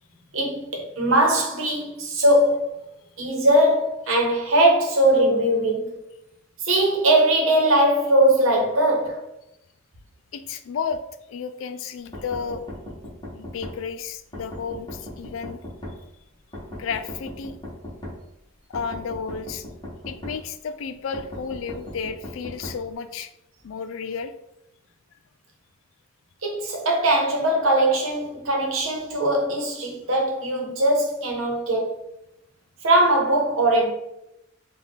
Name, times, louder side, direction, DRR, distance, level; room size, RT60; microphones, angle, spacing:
voice 1, 0.3-2.8 3.2-6.0 6.6-9.2 26.4-32.0 32.8-33.9, right 1 dB, 75° right, 1.0 m, -20 dB
voice 2, 10.3-11.0 11.3-12.6 13.2-15.6 16.7-17.6 18.7-19.7 20.1-23.3 23.6-24.3, left 6 dB, 65° left, 0.3 m, -32 dB
sound 1, 12.1-13.8 14.3-16.0 16.5-18.2 18.7-20.4 21.1-22.8, left 1 dB, 20° left, 1.0 m, -37 dB
4.0 x 2.4 x 3.5 m
head